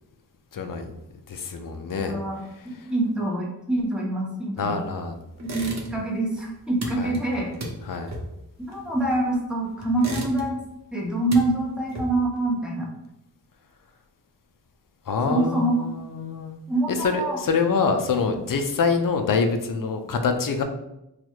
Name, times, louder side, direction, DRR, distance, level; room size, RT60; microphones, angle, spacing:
voice 1, 0.5-0.9 1.3-2.2 4.6-5.2 7.0-7.1 7.9-8.1 15.1-16.6 16.9-20.6, left 5 dB, 55° left, 5 dB, 0.5 m, -25 dB
voice 2, 2.0-4.8 5.4-7.5 8.6-10.6 10.9-12.9 15.3-15.9 16.7-17.4, right 2 dB, ahead, -3 dB, 0.9 m, -25 dB
sound 1, 5.4-6.2 6.4-9.4 9.8-10.7 11.0-12.4, right 1 dB, 40° right, 0.8 m, -35 dB
3.0 x 2.4 x 4.3 m, 0.87 s
wide cardioid pair, 85°, 41 cm